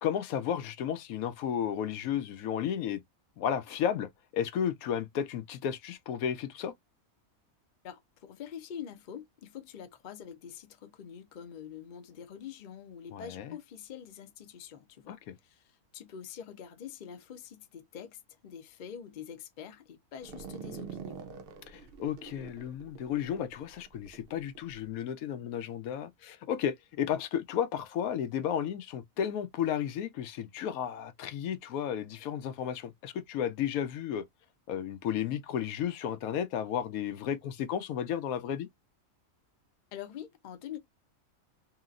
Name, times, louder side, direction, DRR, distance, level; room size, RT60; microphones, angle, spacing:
voice 1, 0.0-3.0 3.4-6.7 13.1-13.6 15.1-15.3 21.7-34.3 34.7-38.7, left 9 dB, 80° left, 1.0 m, -33 dB
voice 2, 7.8-21.2 39.9-40.8, left 8 dB, 55° left, 0.5 m, -45 dB
sound 1, 20.2-24.8, right 6 dB, 75° right, 0.5 m, -46 dB
2.9 x 2.8 x 2.4 m
omnidirectional pair, 1.5 m